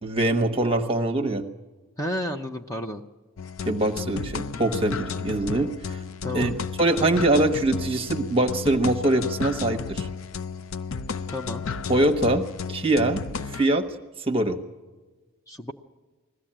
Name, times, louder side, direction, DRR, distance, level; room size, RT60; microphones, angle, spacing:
voice 1, 0.0-1.4 3.6-6.0 6.3-6.5 6.8-10.1 11.9-12.4 12.7-13.2 13.5-13.9 14.3-14.6, right 1 dB, 25° right, 4 dB, 1.0 m, -23 dB
voice 2, 2.0-3.0 6.2-6.6 11.3-11.6 15.5-15.7, left 1 dB, 15° left, 4 dB, 0.7 m, -31 dB
sound 1, 3.4-13.7, left 5 dB, 65° left, 0.6 m, -33 dB
20.5 x 15.0 x 8.8 m, 1.3 s
head